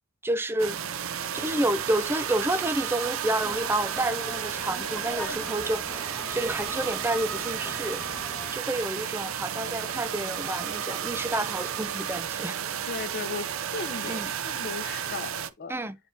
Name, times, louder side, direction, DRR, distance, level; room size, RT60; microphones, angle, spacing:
voice 1, 0.2-0.8 1.3-8.0 8.5-12.6 14.0-14.3 15.7-16.0, right 1 dB, 10° right, 0.5 m, -29 dB
sound 1, 0.6-15.5, right 9 dB, 80° right, 0.6 m, -33 dB
sound 2, 3.4-8.5, left 1 dB, 5° left, 1.4 m, -42 dB
voice 2, 12.9-15.7, left 5 dB, 50° left, 0.7 m, -37 dB
10.5 x 3.6 x 2.6 m
head